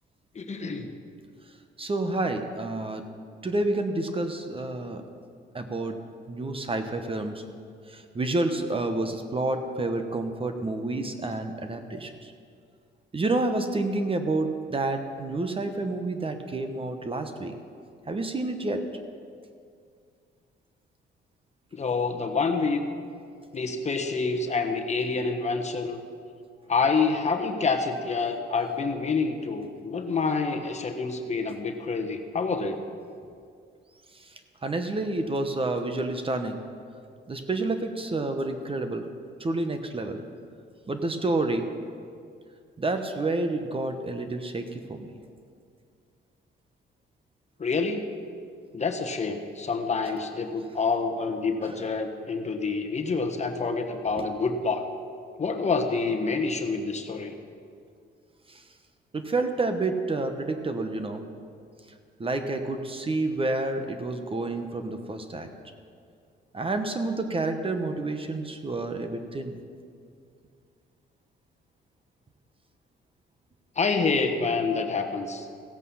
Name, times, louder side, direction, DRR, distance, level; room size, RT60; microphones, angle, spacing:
voice 1, 0.3-0.9 21.7-22.8 23.5-26.0 26.7-32.8 47.6-48.0 48.7-54.8 55.4-57.3 73.8-75.4, left 4 dB, 35° left, 4 dB, 1.2 m, -27 dB
voice 2, 1.8-3.0 3.4-5.0 5.5-6.0 6.3-7.4 7.9-12.3 13.1-17.5 18.1-18.8 34.2-36.6 37.3-39.1 39.4-40.2 40.9-41.7 42.8-45.1 51.6-51.9 58.5-58.6 59.1-61.2 62.2-65.5 66.5-69.6, right 2 dB, 25° right, 7 dB, 1.0 m, -29 dB
16.0 x 8.2 x 5.6 m, 2.3 s
cardioid pair, 90°, 20 cm